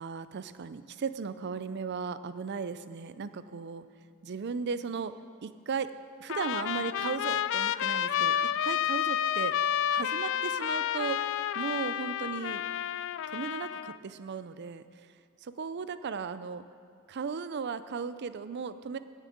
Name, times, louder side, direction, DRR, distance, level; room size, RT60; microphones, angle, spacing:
voice 1, 0.0-3.8 4.2-5.1 5.4-5.9 6.2-9.6 9.9-11.3 11.5-12.6 13.3-14.8 15.4-16.7 17.1-19.0, right 5 dB, 55° right, 13 dB, 0.5 m, -36 dB
Trumpet, 6.3-14.0, left 9 dB, 65° left, 0.3 m, -30 dB
10.0 x 7.4 x 8.5 m, 2.2 s
head